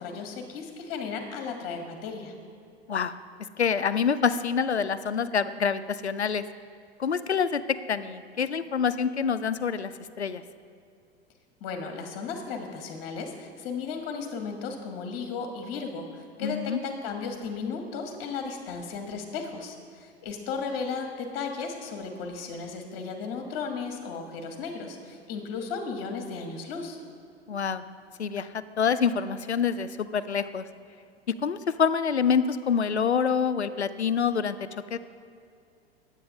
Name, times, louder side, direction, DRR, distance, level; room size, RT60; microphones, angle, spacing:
voice 1, 0.0-2.3 11.6-27.0, left 5 dB, 40° left, 4 dB, 1.3 m, -35 dB
voice 2, 3.6-6.4 7.0-10.4 16.4-16.8 27.5-27.8 28.2-30.7 31.3-34.6 34.9-35.0, left 6 dB, 90° left, 13 dB, 0.5 m, -26 dB
10.5 x 8.1 x 5.4 m, 2.5 s
figure-of-eight pair, 90°, 32 cm